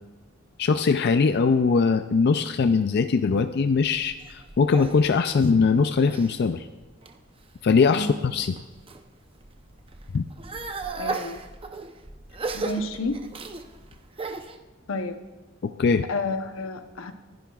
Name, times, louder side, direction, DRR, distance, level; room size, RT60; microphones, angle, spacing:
voice 1, 0.6-6.7 7.6-8.5 10.1-10.3 15.6-16.0, left 5 dB, 55° left, 9 dB, 0.4 m, -21 dB
sound 1, 3.7-6.3 6.8-7.4 8.0-9.0 9.4-14.6, right 3 dB, 25° right, 0.7 m, -36 dB
voice 2, 11.0-11.4 12.5-13.2 14.9-15.2 16.1-17.1, left 2 dB, 85° left, 8 dB, 0.9 m, -30 dB
25.5 x 10.5 x 2.4 m, 1.2 s
head